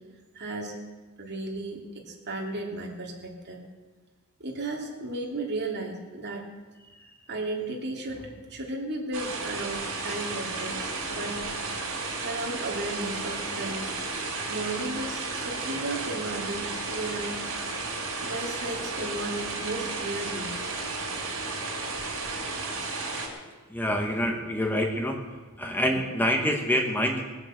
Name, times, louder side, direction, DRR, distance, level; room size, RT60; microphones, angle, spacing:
voice 1, 0.3-0.7 1.2-3.6 4.4-6.4 7.3-11.4 12.2-13.9 14.5-17.3 18.2-20.6, right 2 dB, 50° right, 0 dB, 2.8 m, -34 dB
sound 1, 9.1-23.3, right 3 dB, 65° right, 4.1 m, -33 dB
voice 2, 23.7-27.2, equal, 10° left, 3 dB, 1.1 m, -27 dB
20.0 x 7.8 x 7.7 m, 1.3 s
head